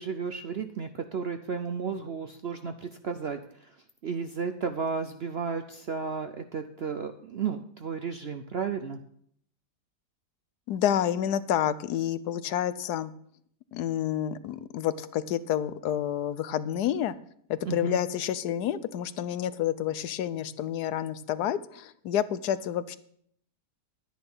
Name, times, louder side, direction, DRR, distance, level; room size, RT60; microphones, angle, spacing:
voice 1, 0.0-3.4 4.0-9.0 17.7-18.0, right 5 dB, 60° right, 8 dB, 0.6 m, -33 dB
voice 2, 10.7-13.1 13.7-17.1 17.5-23.0, left 10 dB, 70° left, 15 dB, 1.2 m, -29 dB
11.0 x 10.0 x 5.5 m, 0.65 s
omnidirectional pair, 1.8 m